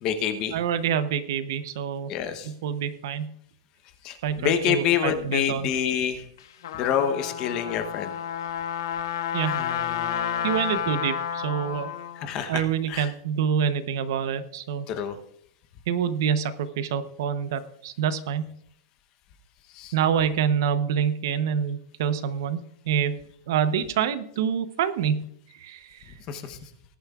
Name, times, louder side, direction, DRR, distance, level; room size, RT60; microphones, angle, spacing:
voice 1, 0.0-0.6 2.1-2.5 4.0-6.2 6.7-8.1 9.5-10.6 12.2-13.1 14.9-15.1 19.7-19.9 26.3-26.6, left 8 dB, 25° left, 9 dB, 0.8 m, -27 dB
voice 2, 0.5-2.1 2.4-3.3 4.2-5.7 9.3-9.6 10.4-11.9 12.5-14.9 15.9-18.4 19.9-22.6 22.9-23.2 23.5-26.1, right 8 dB, 55° right, 12 dB, 0.8 m, -26 dB
Trumpet, 6.4-12.3, left 9 dB, 65° left, 1.3 m, -30 dB
19.5 x 10.5 x 2.4 m, 0.68 s
supercardioid pair, 175°, 2 cm